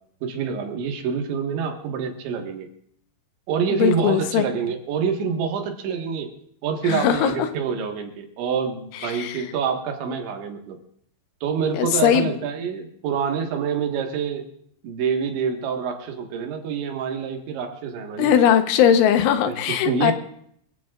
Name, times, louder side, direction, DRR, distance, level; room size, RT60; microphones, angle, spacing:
voice 1, 0.2-2.7 3.5-6.3 6.6-10.8 11.4-14.5 14.8-18.3 19.5-20.1, right 6 dB, 75° right, 3 dB, 4.0 m, -26 dB
voice 2, 3.7-4.5 6.8-7.3 9.0-9.4 11.7-12.3 18.2-20.1, left 9 dB, 90° left, 8 dB, 3.6 m, -19 dB
25.0 x 15.5 x 2.5 m, 0.66 s
omnidirectional pair, 5.3 m